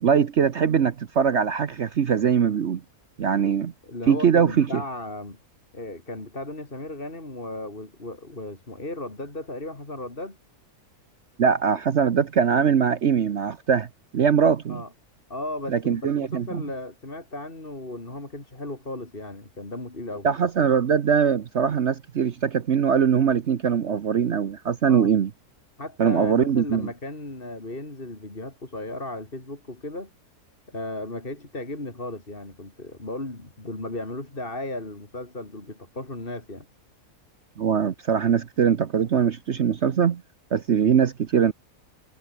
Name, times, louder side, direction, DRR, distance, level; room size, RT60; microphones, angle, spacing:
voice 1, 0.0-2.8 3.2-3.7 4.1-4.8 11.4-13.9 14.1-14.8 15.7-16.6 20.2-25.3 26.0-26.9 37.6-40.2 40.5-41.5, right 7 dB, 55° right, 1.1 m, -22 dB
voice 2, 3.8-5.4 5.7-10.4 14.7-14.9 15.3-20.3 24.9-25.1 25.8-30.1 30.7-36.7 40.9-41.1, left 2 dB, 35° left, 4.0 m, -35 dB
omnidirectional pair, 1.6 m